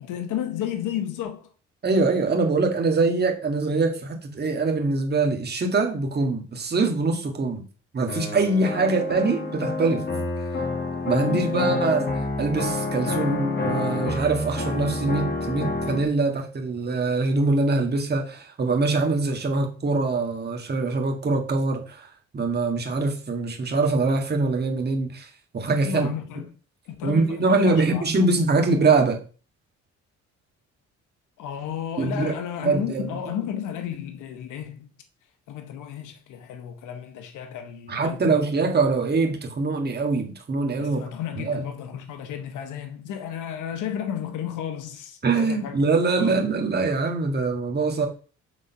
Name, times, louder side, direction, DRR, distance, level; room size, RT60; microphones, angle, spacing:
voice 1, 0.0-1.5 11.2-11.9 25.8-26.5 26.9-28.6 31.4-34.9 35.5-38.8 40.8-45.8 46.2-46.4, left 9 dB, 85° left, 1.0 m, -33 dB
voice 2, 1.8-7.6 7.9-10.0 11.0-12.1 12.4-22.1 22.3-26.1 27.0-29.2 32.0-32.3 32.6-33.0 37.9-41.0 41.4-41.6 45.2-48.1, right 3 dB, 35° right, 1.7 m, -23 dB
sound 1, 8.1-16.1, left 3 dB, 35° left, 2.0 m, -28 dB
6.5 x 3.7 x 5.6 m
cardioid pair, 90°, 30 cm